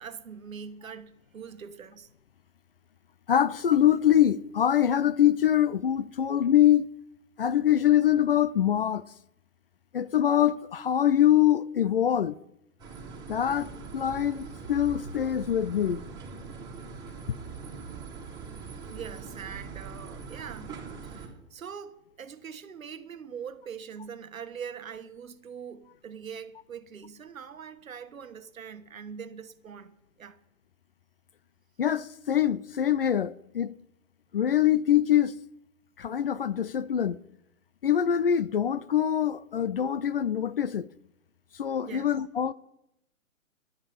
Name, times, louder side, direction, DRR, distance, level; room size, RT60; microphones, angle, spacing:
voice 1, 0.0-2.1 18.9-30.4 41.8-42.1, right 7 dB, 70° right, 1.3 m, -43 dB
voice 2, 3.3-6.9 7.4-9.0 9.9-12.4 13.3-16.0 31.8-33.8 34.3-35.3 36.0-37.2 37.8-40.9 41.6-42.5, left 10 dB, 45° left, 0.5 m, -24 dB
sound 1, 12.8-21.3, right 5 dB, 10° right, 2.5 m, -42 dB
11.5 x 11.0 x 7.1 m
hypercardioid pair, 145°, 41 cm